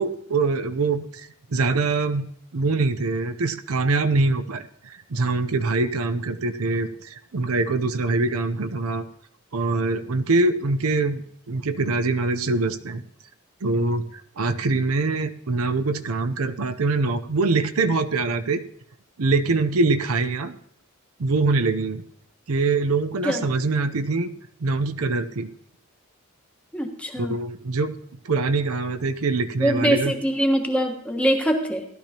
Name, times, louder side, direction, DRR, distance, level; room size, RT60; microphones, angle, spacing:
voice 1, 0.0-2.2 2.5-9.0 9.5-13.0 13.6-18.6 19.2-20.5 21.2-22.0 22.5-24.3 24.6-25.5 27.2-27.9 28.2-30.1, right 3 dB, 90° right, 9 dB, 0.7 m, -24 dB
voice 2, 26.7-27.4 29.6-31.9, right 1 dB, 5° left, 2 dB, 1.4 m, -23 dB
16.5 x 12.0 x 2.9 m, 0.69 s
head